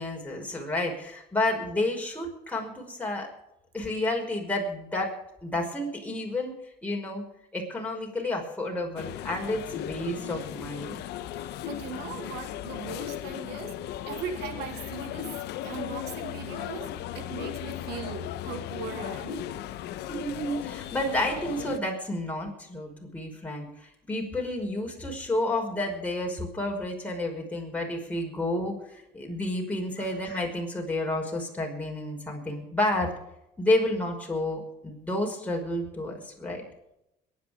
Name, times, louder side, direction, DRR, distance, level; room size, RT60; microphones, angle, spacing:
voice 1, 0.0-3.3 3.7-5.1 5.4-6.6 6.8-7.2 7.5-11.0 20.1-33.2 33.6-36.6, left 1 dB, 10° left, -1 dB, 5.3 m, -30 dB
sound 1, 9.0-21.8, left 12 dB, 80° left, 1.0 m, -36 dB
voice 2, 11.6-13.8 14.1-15.3 15.6-19.5 30.0-30.2, right 6 dB, 85° right, 5 dB, 3.1 m, -39 dB
22.5 x 10.5 x 5.1 m, 0.84 s
cardioid pair, 110°, 17 cm